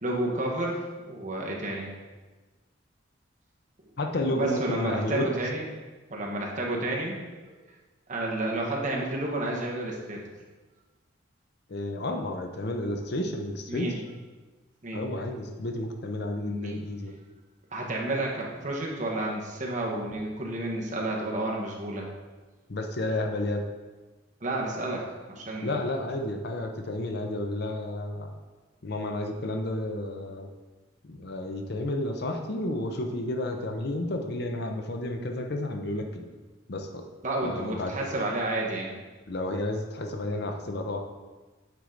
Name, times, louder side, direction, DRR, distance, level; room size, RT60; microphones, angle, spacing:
voice 1, 0.0-1.9 4.3-5.7 6.1-7.5 8.1-10.2 13.7-14.0 14.8-15.0 16.4-16.8 17.7-22.1 24.4-25.8 37.2-38.9, right 2 dB, 40° right, -2 dB, 1.2 m, -31 dB
voice 2, 4.0-5.3 11.7-13.9 14.9-17.1 22.7-23.6 25.6-28.3 28.8-30.5 31.0-36.3 36.7-37.0 37.4-37.9 39.3-41.0, left 1 dB, 55° left, 4 dB, 0.7 m, -31 dB
8.2 x 4.7 x 3.8 m, 1.3 s
head